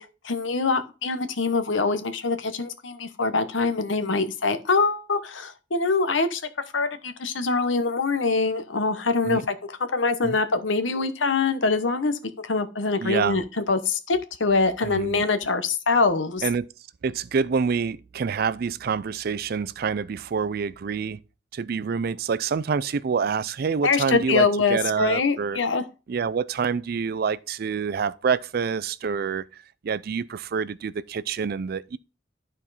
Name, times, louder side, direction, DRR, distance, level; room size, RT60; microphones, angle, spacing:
voice 1, 0.0-6.4 6.7-12.2 12.4-16.4 23.8-25.8, left 4 dB, 90° left, 1.0 m, -24 dB
voice 2, 13.0-13.4 14.8-15.2 16.4-16.7 17.0-21.2 21.5-25.6 26.1-29.4 29.8-32.0, right 5 dB, 55° right, 0.4 m, -27 dB
12.0 x 4.4 x 4.0 m
head